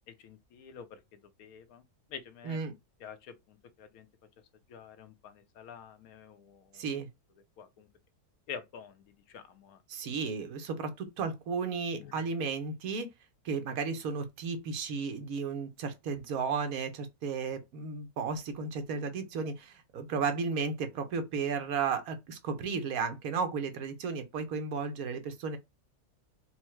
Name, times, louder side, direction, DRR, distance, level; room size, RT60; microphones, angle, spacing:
voice 1, 0.1-1.8 2.1-2.6 3.0-4.1 4.7-6.9 7.6-7.9 8.5-9.8 12.0-12.2, left 7 dB, 70° left, 1.1 m, -48 dB
voice 2, 6.7-7.1 9.9-13.1 13.4-25.6, right 5 dB, 70° right, 1.3 m, -34 dB
4.5 x 2.1 x 4.3 m
omnidirectional pair, 1.6 m